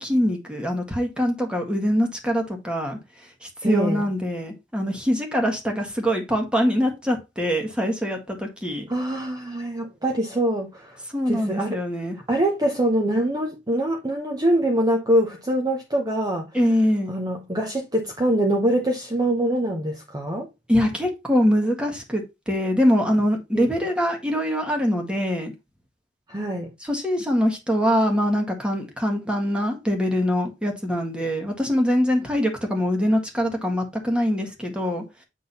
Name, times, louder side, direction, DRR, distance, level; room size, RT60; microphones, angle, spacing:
voice 1, 0.0-3.0 3.4-8.9 11.1-12.2 16.5-17.1 20.7-25.5 26.8-35.0, equal, 5° right, 1.7 m, -23 dB
voice 2, 3.6-4.0 8.9-11.0 11.3-11.8 12.3-16.5 17.1-20.5 23.5-23.7 26.3-26.7, right 1 dB, 20° right, 0.9 m, -24 dB
8.4 x 3.9 x 4.2 m
head